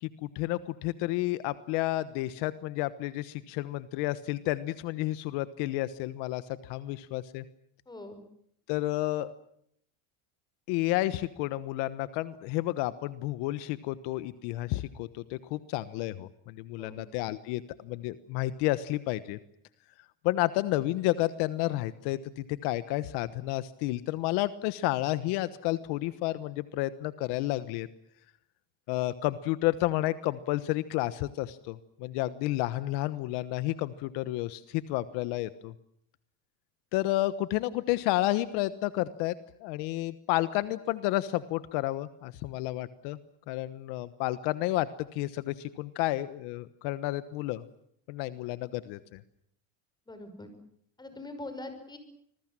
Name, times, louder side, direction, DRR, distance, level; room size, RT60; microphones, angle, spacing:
voice 1, 0.0-7.4 8.7-9.3 10.7-19.4 20.2-27.9 28.9-35.7 36.9-39.3 39.6-43.2 43.5-47.6 48.1-49.2, left 17 dB, 70° left, 14 dB, 1.3 m, -31 dB
voice 2, 7.9-8.2 16.8-17.0 50.1-50.5 51.0-52.0, left 2 dB, 10° left, 8 dB, 5.9 m, -42 dB
26.5 x 21.0 x 7.5 m, 0.69 s
cardioid pair, 140°, 42 cm